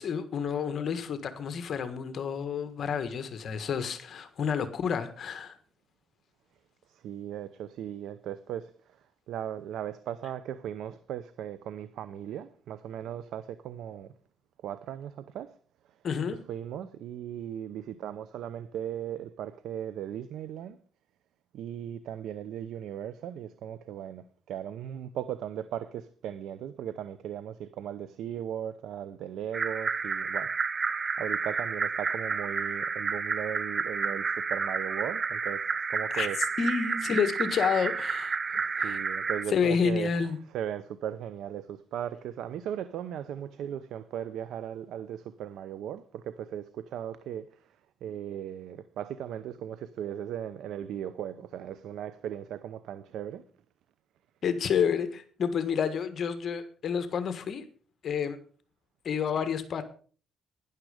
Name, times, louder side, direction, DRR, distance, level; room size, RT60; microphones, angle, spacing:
voice 1, 0.0-5.5 16.0-16.4 36.1-36.3 36.6-39.0 39.5-40.4 54.4-57.7 58.0-58.4 59.0-59.8, left 6 dB, 55° left, 1.4 m, -29 dB
voice 2, 6.9-8.7 9.3-14.1 14.6-15.5 16.3-20.8 21.5-36.7 38.5-47.5 48.0-53.4, right 10 dB, 80° right, 0.7 m, -37 dB
sound 1, 29.5-39.4, right 5 dB, 40° right, 0.9 m, -30 dB
12.5 x 10.5 x 4.9 m
cardioid pair, 90°, 0 cm